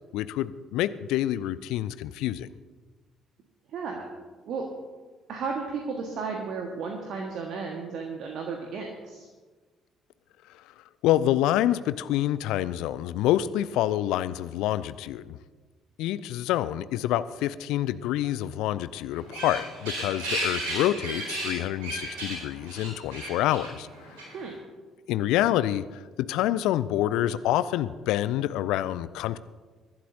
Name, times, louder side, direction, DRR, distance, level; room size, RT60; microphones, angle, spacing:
voice 1, 0.0-2.5 10.5-10.6 11.0-15.4 16.0-23.9 25.1-26.0 26.3-29.4, left 13 dB, 60° left, 15 dB, 0.4 m, -27 dB
voice 2, 3.7-4.1 4.5-4.7 5.3-9.3 24.3-24.5, right 5 dB, 55° right, 1 dB, 1.5 m, -34 dB
sound 1, 19.1-24.5, right 1 dB, 70° right, 4.3 m, -34 dB
23.0 x 11.5 x 2.7 m, 1.3 s
figure-of-eight pair, 45°, 0 cm